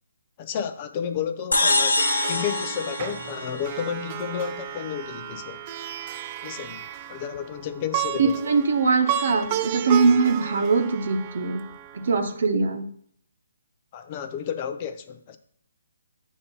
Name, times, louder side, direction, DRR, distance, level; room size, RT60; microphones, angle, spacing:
voice 1, 0.4-5.6 6.4-8.3 13.9-15.4, left 8 dB, 30° left, 9 dB, 0.6 m, -32 dB
sound 1, 1.5-4.1, left 2 dB, 85° left, 1.1 m, -24 dB
Plucked string instrument, 2.0-12.3, right 11 dB, 30° right, 0.4 m, -33 dB
voice 2, 8.2-11.6 11.9-12.9, right 4 dB, 60° right, 6 dB, 1.0 m, -22 dB
8.3 x 2.8 x 5.4 m, 0.63 s
hypercardioid pair, 145°, 0 cm